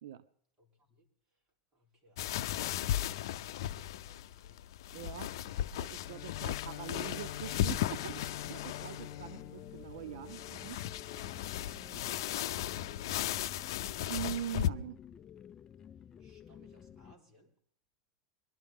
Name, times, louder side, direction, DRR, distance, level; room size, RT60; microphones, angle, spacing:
voice 1, 0.6-1.1 1.7-5.0 5.4-6.0 6.8-6.9 8.5-8.9 9.4-9.5 11.7-12.9 16.2-17.5, right 1 dB, 25° right, 0 dB, 3.8 m, -63 dB
sound 1, 2.2-14.7, left 12 dB, 75° left, 0.6 m, -36 dB
voice 2, 4.9-8.2 8.5-10.8 14.1-15.0, right 11 dB, 85° right, 11 dB, 0.7 m, -43 dB
Bowed string instrument, 6.0-11.1, left 11 dB, 50° left, 1.5 m, -48 dB
sound 2, 7.4-17.1, left 9 dB, 25° left, 0.5 m, -53 dB
23.0 x 12.5 x 3.6 m, 0.64 s
supercardioid pair, 140°, 2 cm